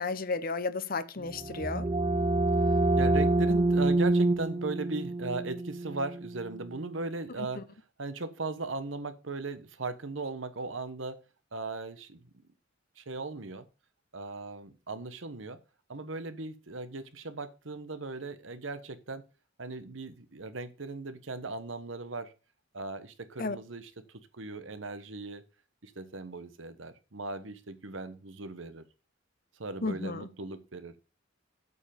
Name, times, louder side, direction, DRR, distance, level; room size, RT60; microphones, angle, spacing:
voice 1, 0.0-1.9 7.5-7.6 23.4-23.6 29.8-30.3, left 3 dB, 50° left, 0.9 m, -33 dB
sound 1, 1.2-6.8, right 2 dB, 25° right, 0.5 m, -27 dB
voice 2, 2.6-7.6 8.0-11.2 11.5-12.3 13.0-13.6 14.1-15.6 15.9-19.2 19.6-22.3 22.7-23.9 24.3-25.4 25.8-28.8 29.6-31.0, right 3 dB, 80° right, 1.2 m, -38 dB
8.3 x 7.0 x 5.2 m
head